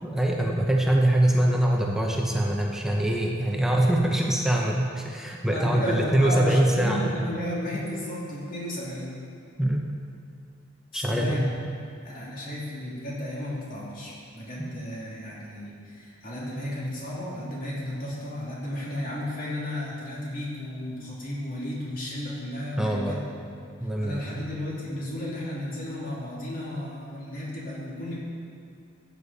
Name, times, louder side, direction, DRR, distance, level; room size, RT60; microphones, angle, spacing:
voice 1, 0.0-7.1 9.6-9.8 10.9-11.8 14.6-14.7 22.8-23.2 23.8-24.4, right 1 dB, ahead, -1 dB, 0.8 m, -24 dB
voice 2, 5.5-9.1 10.9-11.5 12.0-23.2 24.0-28.2, left 1 dB, 45° left, -6 dB, 3.0 m, -33 dB
15.0 x 8.3 x 4.1 m, 2.5 s
head